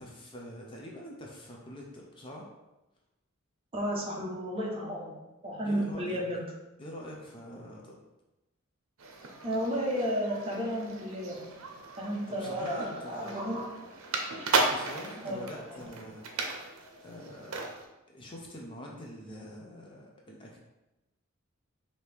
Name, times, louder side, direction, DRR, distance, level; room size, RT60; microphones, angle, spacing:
voice 1, 0.0-2.5 5.6-6.2 6.8-8.0 12.3-13.6 14.5-16.4 17.0-17.7 18.1-20.6, equal, 25° left, -2 dB, 0.6 m, -45 dB
voice 2, 3.7-6.4 9.4-11.5 12.0-13.6 15.2-15.5, equal, 25° right, -3 dB, 0.9 m, -32 dB
sound 1, 9.0-17.9, right 3 dB, 85° right, 0.6 m, -35 dB
4.6 x 2.8 x 3.4 m, 0.99 s
head